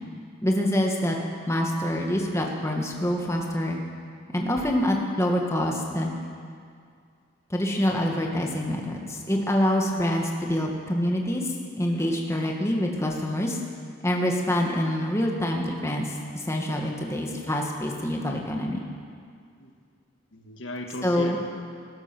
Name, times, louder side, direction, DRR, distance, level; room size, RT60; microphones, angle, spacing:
voice 1, 0.4-1.2 1.5-3.8 4.3-6.1 7.5-11.5 11.8-13.6 14.0-16.1 16.3-18.8 21.0-21.4, equal, 15° left, 0 dB, 1.6 m, -26 dB
voice 2, 16.7-17.0 19.6-19.7 20.3-21.4, left 1 dB, 85° left, 2 dB, 1.7 m, -37 dB
19.5 x 12.0 x 6.1 m, 2.2 s
head